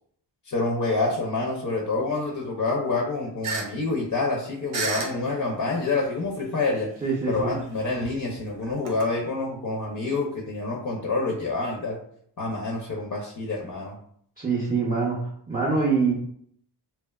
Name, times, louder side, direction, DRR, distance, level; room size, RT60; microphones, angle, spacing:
voice 1, 0.5-6.9 7.3-12.0 12.4-14.0, left 3 dB, 45° left, -2 dB, 0.5 m, -27 dB
sound 1, 3.4-3.7 4.0-4.1 4.7-5.4 6.2-6.3 7.3-9.1, right 3 dB, 90° right, 0.6 m, -31 dB
voice 2, 7.0-7.5 14.4-15.2 15.5-16.1, right 4 dB, 20° right, -5 dB, 0.6 m, -24 dB
2.8 x 2.2 x 2.2 m, 0.65 s
wide cardioid pair, 65°, 47 cm